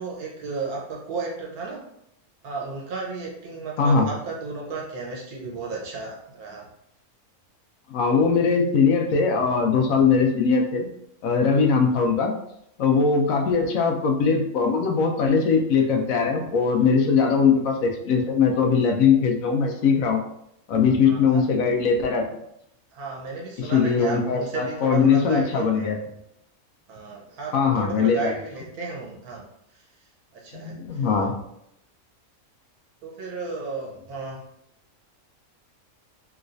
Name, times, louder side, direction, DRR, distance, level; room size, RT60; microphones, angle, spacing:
voice 1, 0.0-1.8 2.4-6.7 21.0-21.4 22.9-25.9 26.9-29.4 29.7-29.8 30.3-31.1 33.0-34.4, right 4 dB, 80° right, -2 dB, 1.4 m, -34 dB
voice 2, 3.8-4.1 7.9-10.9 11.2-12.3 12.8-20.2 20.7-22.2 23.6-26.0 27.5-28.3 30.5-31.4, left 5 dB, 75° left, 3 dB, 0.9 m, -21 dB
3.1 x 3.1 x 2.6 m, 0.76 s
omnidirectional pair, 1.5 m